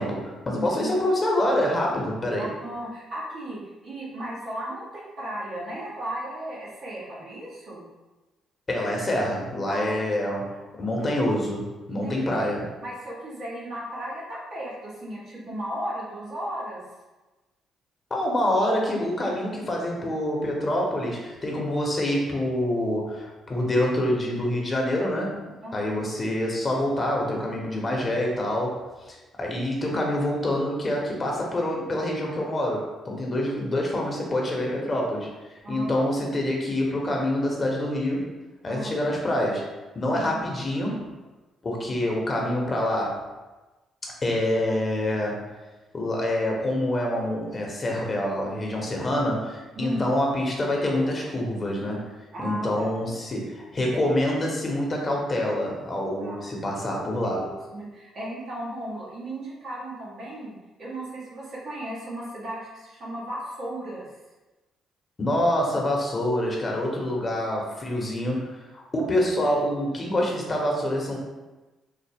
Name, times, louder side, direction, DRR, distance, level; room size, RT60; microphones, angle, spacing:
voice 1, 0.0-2.5 8.7-12.7 18.1-25.4 25.7-38.3 38.6-39.6 39.9-41.0 41.6-43.2 44.0-45.5 45.9-57.5 65.2-71.2, left 1 dB, 35° left, -1 dB, 1.0 m, -26 dB
voice 2, 0.5-0.9 2.4-7.8 9.7-10.0 11.9-12.4 12.8-16.8 25.6-26.0 35.6-36.0 38.7-38.9 40.1-40.7 49.7-50.1 52.3-52.9 56.2-56.4 57.4-60.5 60.8-64.1, right 1 dB, 60° right, -6 dB, 1.3 m, -35 dB
3.9 x 2.0 x 3.4 m, 1.1 s
supercardioid pair, 55°, 0 cm